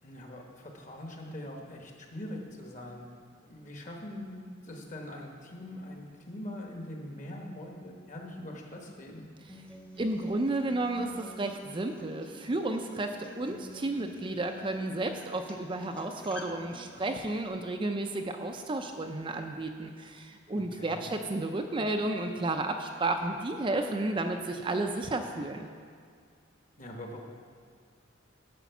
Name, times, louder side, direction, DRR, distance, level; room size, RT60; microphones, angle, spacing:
voice 1, 0.0-3.1 3.5-9.2 20.5-21.1 26.8-27.2, left 1 dB, 40° left, 1 dB, 1.3 m, -42 dB
Acoustic guitar, 9.5-17.5, left 1 dB, 5° left, 0.9 m, -48 dB
voice 2, 10.0-25.7, right 2 dB, 25° right, 4 dB, 0.4 m, -32 dB
11.5 x 5.1 x 7.1 m, 2.1 s
head